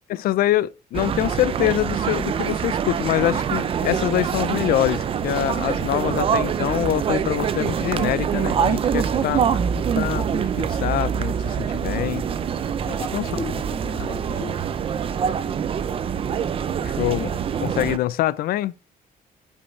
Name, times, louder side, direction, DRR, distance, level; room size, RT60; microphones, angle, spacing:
voice 1, 0.1-9.6 10.0-12.3 13.1-13.2 16.8-18.7, left 14 dB, 80° left, 0.5 m, -25 dB
sound 1, 0.9-18.0, right 7 dB, 35° right, 0.6 m, -25 dB
voice 2, 9.0-9.4 12.9-14.7, left 5 dB, 35° left, 2.1 m, -36 dB
8.4 x 5.5 x 4.7 m
cardioid pair, 170°, 15 cm